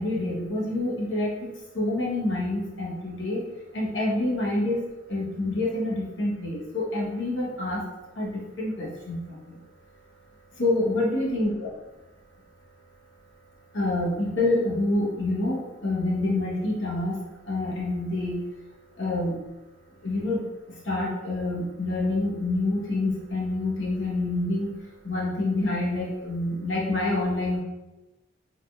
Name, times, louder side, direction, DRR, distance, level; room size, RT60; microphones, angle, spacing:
voice 1, 0.0-1.3 1.7-3.4 3.7-4.8 5.1-7.8 8.2-8.3 8.6-9.2 10.6-11.7 13.7-17.1 17.5-18.3 19.0-19.3 20.0-20.4 20.9-24.7 25.0-27.6, left 2 dB, 75° left, -4 dB, 0.9 m, -27 dB
3.4 x 2.5 x 2.2 m, 1.0 s
head